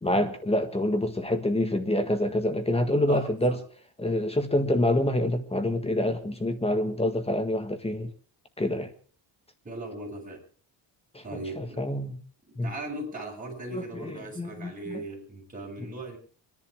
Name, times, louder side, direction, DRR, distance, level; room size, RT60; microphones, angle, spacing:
voice 1, 0.0-3.6 4.0-8.1 8.6-8.9 11.1-11.2 11.6-12.2 12.6-12.7 13.7-15.0, left 1 dB, 15° left, 1.7 m, -27 dB
voice 2, 3.1-3.6 9.6-10.4 11.2-11.8 12.6-16.2, right 2 dB, 15° right, 7.0 m, -38 dB
25.0 x 11.0 x 4.9 m
cardioid pair, 145°, 45 cm